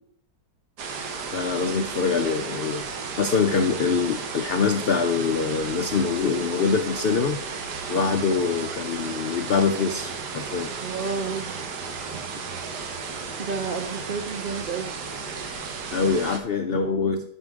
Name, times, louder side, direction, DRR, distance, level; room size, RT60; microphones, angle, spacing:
sound 1, 0.8-16.4, right 5 dB, 75° right, 1.6 m, -34 dB
voice 1, 1.3-2.9 3.2-7.4 7.9-10.7 15.9-17.3, left 5 dB, 85° left, 7 dB, 0.5 m, -24 dB
voice 2, 10.8-11.5 12.1-12.2 12.8-12.9 13.4-14.9 16.7-16.8, right 4 dB, 55° right, 3 dB, 0.6 m, -31 dB
11.0 x 6.3 x 3.6 m, 0.72 s
omnidirectional pair, 1.8 m